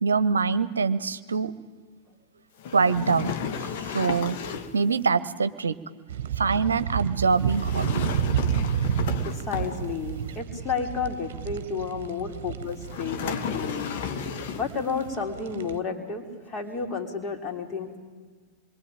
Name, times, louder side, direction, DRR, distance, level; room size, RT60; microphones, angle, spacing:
voice 1, 0.0-1.5 2.7-3.3 3.6-4.4 4.7-5.7 6.4-8.1, right 5 dB, 75° right, 15 dB, 0.9 m, -24 dB
sound 1, 2.6-4.8 7.4-10.1 12.8-14.8, left 7 dB, 50° left, 1.8 m, -33 dB
sound 2, 6.1-15.8, right 9 dB, 55° right, 1.1 m, -31 dB
voice 2, 9.2-13.9 14.5-18.0, left 5 dB, 30° left, 3 dB, 4.1 m, -31 dB
26.5 x 23.0 x 9.1 m, 1.5 s
figure-of-eight pair, 90°, 0 cm